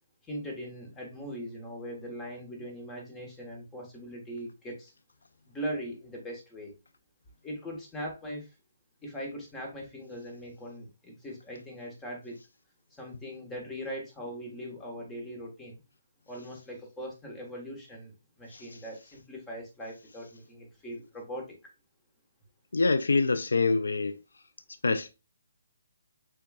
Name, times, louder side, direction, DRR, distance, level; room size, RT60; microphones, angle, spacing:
voice 1, 0.2-4.9 5.5-6.8 7.4-8.5 9.0-12.4 13.0-15.8 16.3-21.5, equal, 10° left, 1.2 m, -40 dB
voice 2, 22.7-24.1 24.8-25.1, left 3 dB, 75° left, 0.4 m, -25 dB
6.5 x 2.3 x 2.3 m
figure-of-eight pair, 145°, 0 cm